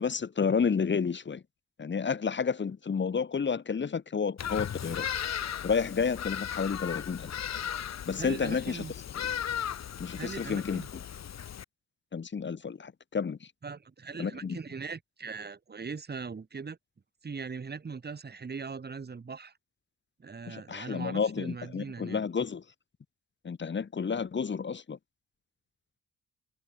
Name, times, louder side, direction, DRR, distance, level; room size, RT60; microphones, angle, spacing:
voice 1, 0.0-1.4 1.8-5.1 5.6-7.3 8.1-8.8 10.0-10.8 12.1-13.5 14.2-14.6 20.5-22.6 23.4-25.0, left 6 dB, 40° left, 3.1 m, -30 dB
Bird vocalization bird call bird song, 4.4-11.6, left 9 dB, 60° left, 7.5 m, -36 dB
voice 2, 8.1-8.9 10.2-10.9 13.6-16.8 17.2-19.5 20.2-22.2, right 5 dB, 35° right, 3.9 m, -40 dB
cardioid pair, 90°, 30 cm